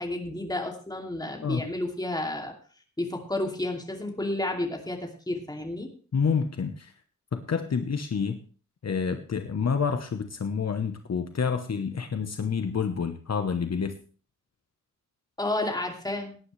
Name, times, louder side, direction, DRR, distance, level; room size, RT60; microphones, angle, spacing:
voice 1, 0.0-2.5 3.0-5.9 15.4-16.4, left 1 dB, 15° left, 2 dB, 2.7 m, -31 dB
voice 2, 6.1-6.9 7.3-8.4 8.8-14.0, left 6 dB, 55° left, 7 dB, 1.0 m, -28 dB
18.0 x 10.0 x 3.3 m, 0.40 s
wide cardioid pair, 135°, 30 cm